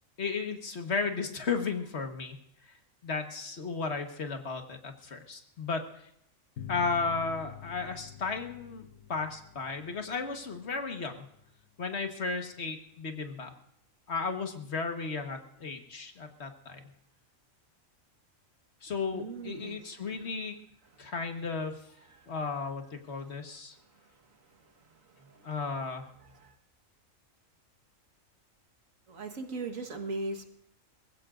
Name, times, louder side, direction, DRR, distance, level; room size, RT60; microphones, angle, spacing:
voice 1, 0.2-2.4 3.0-5.9 6.7-11.2 11.8-13.5 14.1-16.8 18.8-20.6 21.0-21.7 22.3-23.8 25.4-26.1, left 4 dB, 55° left, 5 dB, 1.6 m, -34 dB
sound 1, 6.6-11.7, left 9 dB, 70° left, 1.2 m, -47 dB
voice 2, 19.1-20.1 22.2-22.3 24.5-24.6 24.9-25.6 26.3-26.5 29.1-30.4, right 3 dB, 85° right, 6 dB, 1.9 m, -39 dB
24.5 x 15.5 x 2.6 m, 0.72 s
omnidirectional pair, 1.4 m